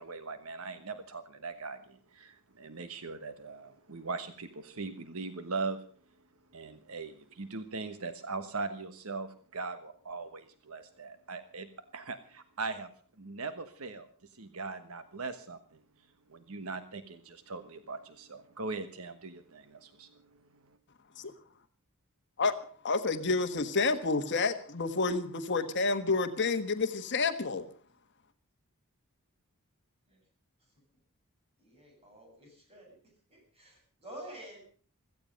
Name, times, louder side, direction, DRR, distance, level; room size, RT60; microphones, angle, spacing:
voice 1, 0.0-5.8 6.5-11.7 11.9-12.9 13.2-14.1 14.3-15.6 16.3-20.1, right 3 dB, 70° right, 10 dB, 1.3 m, -40 dB
voice 2, 22.8-27.6, left 3 dB, 50° left, 8 dB, 1.4 m, -29 dB
voice 3, 31.6-33.0 33.3-34.6, right 1 dB, 30° right, 1 dB, 7.9 m, -49 dB
16.5 x 15.0 x 5.3 m, 0.43 s
head